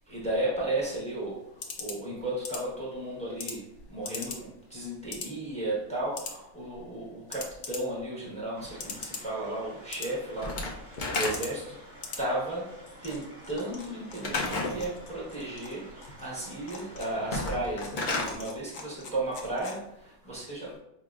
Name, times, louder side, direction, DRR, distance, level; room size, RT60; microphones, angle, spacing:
voice 1, 0.1-1.4 1.8-3.6 3.9-11.7 12.2-12.7 13.0-15.9 16.2-20.8, right 1 dB, 5° left, -5 dB, 0.9 m, -34 dB
sound 1, 0.8-20.1, left 4 dB, 65° left, 0.8 m, -44 dB
sound 2, 8.5-17.4, right 1 dB, 35° right, 1.2 m, -51 dB
Slam / Wood, 10.4-11.7 14.2-14.8 17.2-18.3, left 2 dB, 90° left, 0.4 m, -31 dB
4.6 x 2.8 x 2.4 m, 0.82 s
omnidirectional pair, 1.6 m